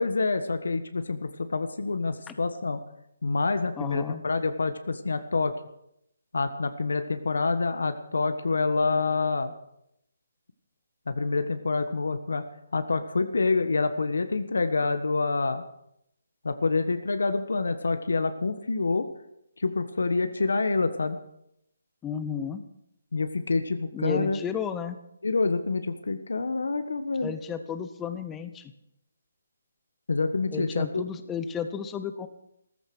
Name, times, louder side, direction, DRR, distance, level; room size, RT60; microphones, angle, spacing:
voice 1, 0.0-2.8 3.2-5.5 6.3-9.5 11.1-12.4 12.7-15.6 16.4-19.1 19.6-21.2 23.1-24.4 25.2-27.3 30.1-31.1, left 3 dB, 90° left, 9 dB, 1.4 m, -27 dB
voice 2, 3.8-4.2 22.0-22.6 23.9-25.0 27.2-28.7 30.5-32.3, left 7 dB, 10° left, 10 dB, 0.6 m, -33 dB
15.0 x 14.0 x 6.2 m, 0.78 s
hypercardioid pair, 175°, 0 cm